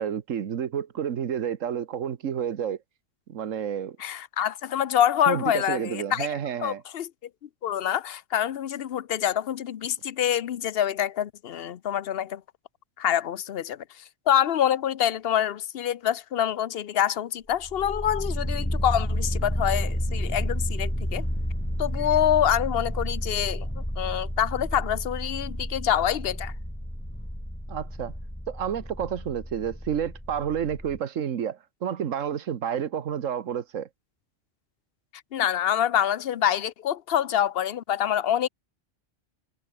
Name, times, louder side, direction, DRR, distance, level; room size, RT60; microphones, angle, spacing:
voice 1, 0.0-2.8 3.3-4.0 5.2-6.8 27.7-28.1 28.5-33.9, right 8 dB, 85° right, 1.5 m, -30 dB
voice 2, 4.0-7.1 7.6-12.4 13.0-13.8 14.3-21.2 21.8-23.7 24.0-26.5 35.3-38.5, left 10 dB, 55° left, 0.8 m, -26 dB
sound 1, 17.5-31.0, equal, 10° left, 5.3 m, -31 dB
omnidirectional pair, 1.3 m